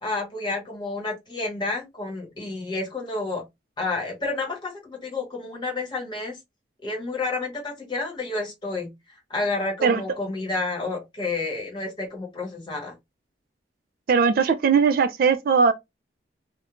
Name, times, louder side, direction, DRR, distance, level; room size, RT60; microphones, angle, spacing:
voice 1, 0.0-3.4 3.8-6.4 6.8-8.9 9.3-12.9, left 3 dB, 25° left, 1.1 m, -30 dB
voice 2, 14.1-15.7, right 5 dB, 50° right, 0.3 m, -19 dB
2.4 x 2.1 x 2.9 m
head